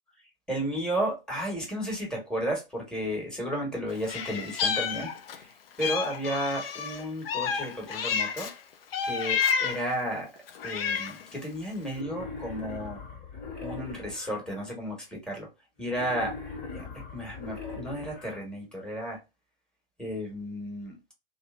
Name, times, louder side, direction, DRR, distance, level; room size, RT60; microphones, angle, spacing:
voice 1, 0.5-5.5 5.8-8.5 9.0-10.3 10.6-13.0 13.6-15.5 15.8-16.3 16.7-19.2 20.0-21.0, equal, 5° left, 1.4 m, -33 dB
Meow, 4.0-5.4 5.8-8.5 8.9-9.9 10.5-11.3, left 6 dB, 75° left, 0.6 m, -30 dB
Wild animals, 11.9-14.4 15.9-18.4, left 4 dB, 50° left, 1.7 m, -40 dB
2.6 x 2.5 x 2.4 m
hypercardioid pair, 105°, 29 cm